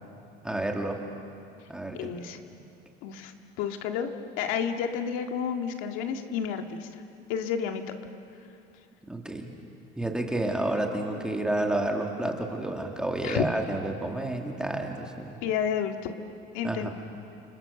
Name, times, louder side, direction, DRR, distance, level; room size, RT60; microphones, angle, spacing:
voice 1, 0.4-1.0 1.7-2.1 9.1-9.5 10.0-15.4 16.6-16.9, right 1 dB, 5° right, 1 dB, 2.1 m, -30 dB
voice 2, 1.9-2.4 3.0-4.1 4.4-7.0 7.3-7.8 13.2-13.5 15.4-16.2 16.5-16.9, left 8 dB, 80° left, 5 dB, 2.0 m, -30 dB
30.0 x 27.0 x 6.8 m, 2.7 s
cardioid pair, 165°, 21 cm